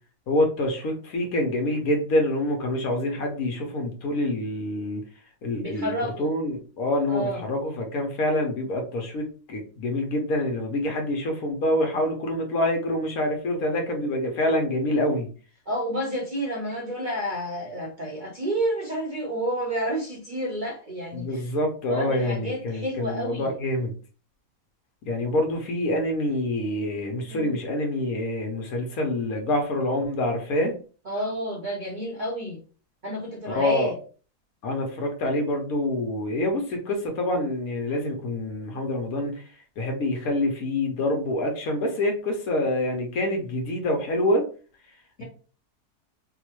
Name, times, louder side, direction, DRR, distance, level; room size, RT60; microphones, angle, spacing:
voice 1, 0.3-5.0 5.4-5.9 6.2-15.3 21.1-23.9 25.0-30.7 33.5-33.9 34.6-39.4 39.8-44.5 45.2-45.3, left 1 dB, 65° left, 1.3 m, -26 dB
voice 2, 5.6-6.3 7.1-7.4 15.7-21.5 21.9-23.6 27.3-27.6 31.0-32.6 33.0-34.0 45.2-45.3, equal, 45° right, 0.6 m, -30 dB
4.9 x 2.1 x 3.0 m
omnidirectional pair, 1.7 m